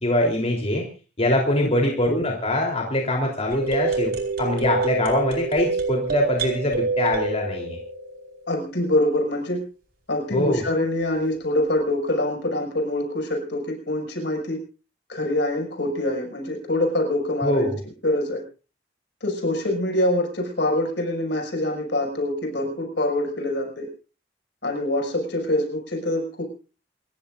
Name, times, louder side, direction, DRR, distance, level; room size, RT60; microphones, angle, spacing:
voice 1, 0.0-0.9 1.2-7.8 10.3-10.6 17.4-17.8, left 1 dB, 35° left, 0 dB, 3.6 m, -23 dB
sound 1, 3.5-8.6, right 4 dB, 60° right, 4.5 m, -27 dB
voice 2, 8.5-9.6 10.1-14.6 15.1-17.7 18.0-18.4 19.2-23.9 24.6-26.4, left 1 dB, 70° left, 3 dB, 6.3 m, -25 dB
29.0 x 15.5 x 2.6 m, 0.35 s
head